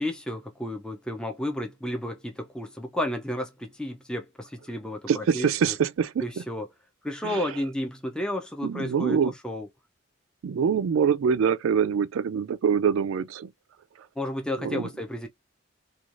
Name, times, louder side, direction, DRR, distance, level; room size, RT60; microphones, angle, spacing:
voice 1, 0.0-5.7 6.2-6.7 7.0-9.7 14.2-15.3, left 1 dB, 5° left, 0.4 m, -32 dB
voice 2, 5.1-6.4 7.2-7.6 8.6-9.3 10.4-13.5 14.0-14.1 14.6-14.9, right 7 dB, 85° right, 0.3 m, -25 dB
3.0 x 2.3 x 2.4 m
head